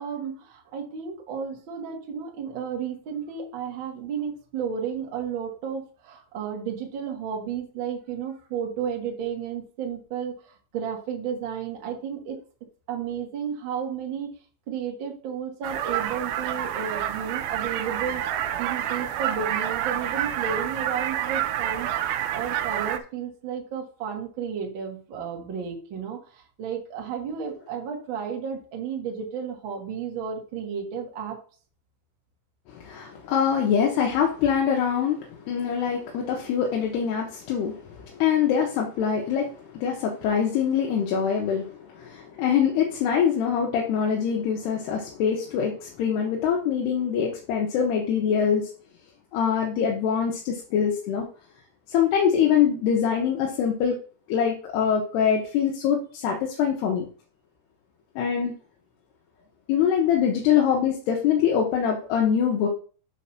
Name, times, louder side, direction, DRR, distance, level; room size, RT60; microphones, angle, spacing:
voice 1, 0.0-12.4 12.9-14.4 14.7-21.9 22.3-31.4, right 7 dB, 55° right, 0 dB, 1.4 m, -33 dB
sound 1, 15.6-23.0, right 11 dB, 85° right, 2.8 m, -28 dB
voice 2, 32.7-48.7 49.3-51.3 51.9-54.0 54.3-57.1 58.2-58.6 59.7-62.7, left 8 dB, 80° left, 0 dB, 3.1 m, -24 dB
7.1 x 4.2 x 5.9 m, 0.40 s
omnidirectional pair, 4.8 m